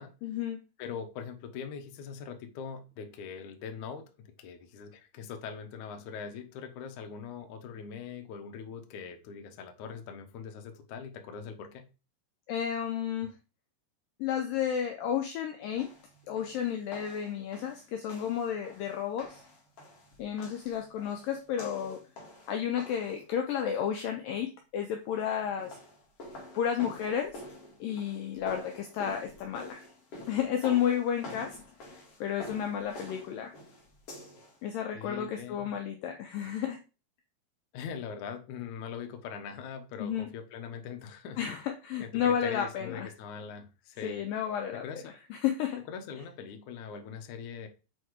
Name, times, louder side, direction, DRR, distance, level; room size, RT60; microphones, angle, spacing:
voice 1, 0.2-0.6 12.5-13.3 14.2-15.9 16.3-19.4 20.2-22.0 22.5-25.8 26.5-27.4 27.8-29.9 30.3-31.6 32.2-33.5 34.6-36.8 40.0-40.3 41.4-43.1 44.0-44.9 45.3-45.8, left 9 dB, 80° left, 4 dB, 2.0 m, -32 dB
voice 2, 0.8-11.8 34.9-35.7 37.7-41.4 42.0-44.2 44.7-45.1 45.9-47.7, left 6 dB, 65° left, 6 dB, 2.1 m, -42 dB
sound 1, 15.8-23.2 25.4-34.6, left 2 dB, 45° left, 2.1 m, -47 dB
7.5 x 4.4 x 4.8 m, 0.32 s
omnidirectional pair, 4.9 m